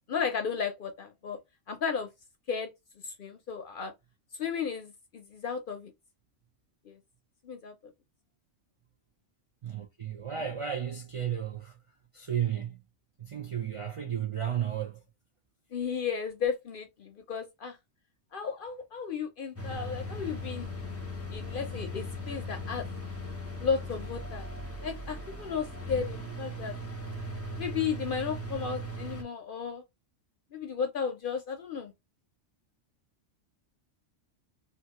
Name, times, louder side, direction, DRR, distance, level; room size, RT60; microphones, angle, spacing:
voice 1, 0.1-1.4 1.7-2.1 2.5-2.7 3.0-3.9 4.4-5.9 6.9-7.0 7.4-7.7 15.7-17.8 18.3-20.8 21.3-22.9 23.6-24.5 24.8-26.8 27.6-29.8 30.5-31.9, left 6 dB, 60° left, 0.6 m, -34 dB
voice 2, 9.6-11.8 12.1-12.8 13.2-15.0, right 9 dB, 60° right, 0.3 m, -33 dB
sound 1, 19.6-29.2, left 1 dB, 15° left, 0.5 m, -38 dB
2.9 x 2.3 x 2.9 m
omnidirectional pair, 1.2 m